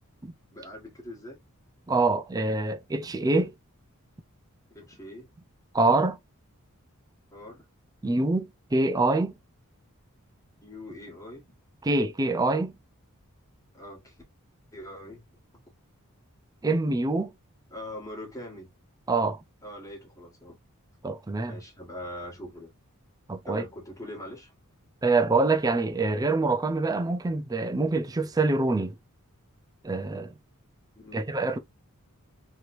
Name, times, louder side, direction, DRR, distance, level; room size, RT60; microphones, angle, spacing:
voice 1, 0.5-1.4 4.7-5.3 7.3-7.6 10.6-11.4 13.7-14.2 14.7-15.2 17.7-18.7 19.6-20.6 21.5-22.7 23.4-24.5 30.9-31.3, left 1 dB, 15° left, 1.5 m, -42 dB
voice 2, 1.9-3.5 5.7-6.2 8.0-9.3 11.8-12.7 16.6-17.3 19.1-19.4 21.0-21.6 23.3-23.6 25.0-29.0 29.8-30.3 31.1-31.6, right 3 dB, 15° right, 0.4 m, -25 dB
3.2 x 2.9 x 2.6 m
head